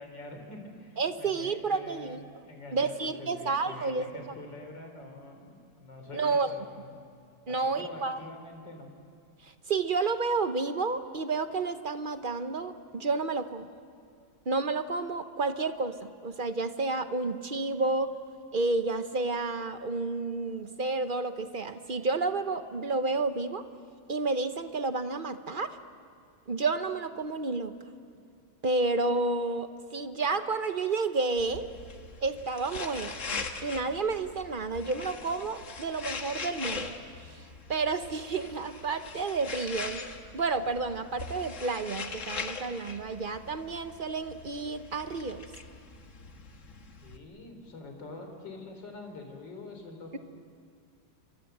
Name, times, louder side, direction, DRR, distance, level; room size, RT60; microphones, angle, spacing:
voice 1, 0.0-2.2 2.5-6.9 7.5-8.9 47.0-50.2, left 2 dB, 65° left, 4 dB, 4.3 m, -45 dB
voice 2, 1.0-2.2 2.7-4.1 6.1-6.5 7.5-8.2 9.4-13.7 14.5-18.1 18.5-23.6 24.1-25.8 26.5-27.8 28.6-31.7 32.2-36.9 37.3-40.0 40.3-45.4, right 3 dB, 50° right, 9 dB, 0.6 m, -30 dB
sound 1, 31.4-47.2, left 4 dB, 40° left, 1.7 m, -41 dB
29.0 x 25.0 x 7.9 m, 2.4 s
omnidirectional pair, 2.2 m